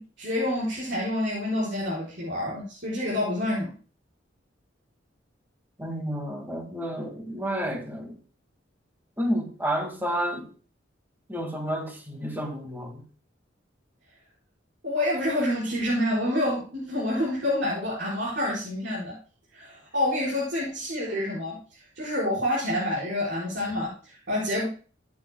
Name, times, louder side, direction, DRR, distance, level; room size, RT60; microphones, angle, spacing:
voice 1, 0.0-3.7 14.8-19.1 19.5-21.6 21.9-24.7, left 1 dB, 65° right, 4.8 m, -28 dB
voice 2, 5.8-8.2 9.2-10.5 11.3-13.0, equal, 10° right, 1.9 m, -30 dB
15.0 x 8.6 x 2.2 m
head